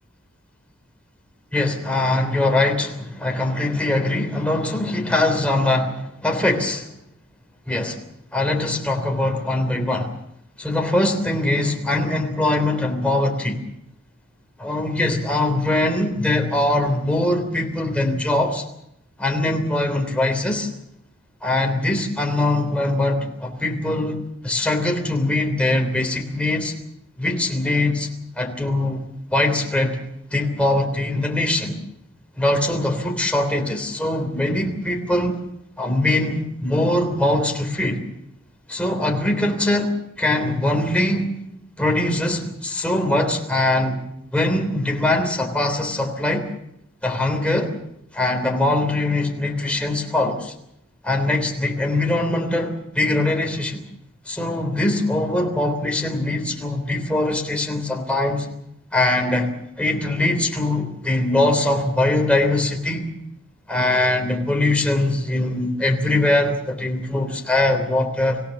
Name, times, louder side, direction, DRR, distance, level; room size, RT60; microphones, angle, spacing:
voice 1, 1.5-6.9 7.7-8.0 8.3-10.1 10.6-13.6 14.6-18.6 19.2-20.7 21.4-26.7 27.2-28.1 28.4-29.0 29.3-30.0 30.3-31.8 32.4-35.4 35.8-38.0 38.7-41.3 41.8-44.0 44.3-46.5 47.0-47.7 48.1-50.5 51.0-53.8 54.3-58.5 58.9-63.1 63.7-68.4, left 2 dB, 5° left, 2 dB, 3.4 m, -22 dB
25.5 x 16.5 x 7.2 m, 0.77 s
head